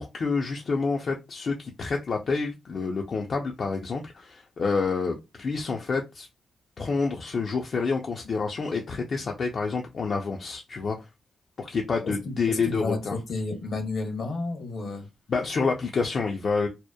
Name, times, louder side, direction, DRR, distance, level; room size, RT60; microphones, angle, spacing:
voice 1, 0.0-6.3 6.8-11.1 11.6-13.1 15.3-16.7, left 4 dB, 60° left, 0.4 m, -28 dB
voice 2, 12.0-15.1, left 3 dB, 75° left, 0.9 m, -31 dB
2.8 x 2.1 x 2.2 m
cardioid pair, 60°, 0 cm